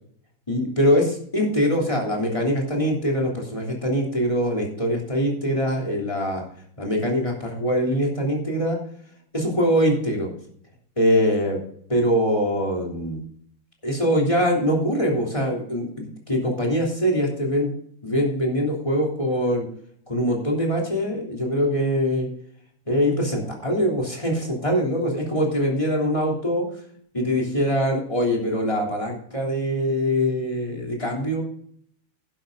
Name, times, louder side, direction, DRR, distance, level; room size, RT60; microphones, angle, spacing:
voice 1, 0.5-6.4 6.8-8.8 9.3-10.3 11.0-11.6 11.9-13.2 13.8-17.7 18.0-19.6 20.1-22.3 22.9-26.6 27.1-31.4, equal, 15° left, -2 dB, 3.3 m, -23 dB
11.5 x 10.5 x 3.9 m, 0.62 s
omnidirectional pair, 2.1 m